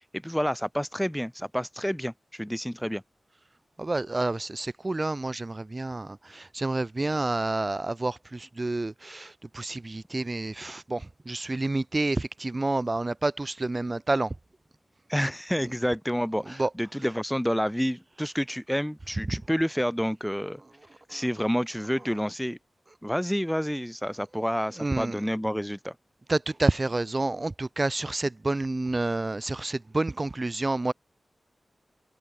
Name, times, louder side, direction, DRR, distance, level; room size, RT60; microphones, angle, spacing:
voice 1, 0.2-3.0 15.1-20.6 21.1-22.6 23.0-26.0, equal, ahead, 1.9 m, -29 dB
voice 2, 3.8-14.3 16.6-16.7 21.1-21.2 24.8-25.2 26.3-30.9, right 2 dB, 30° right, 1.8 m, -29 dB
open air
wide cardioid pair, 125°, 0 cm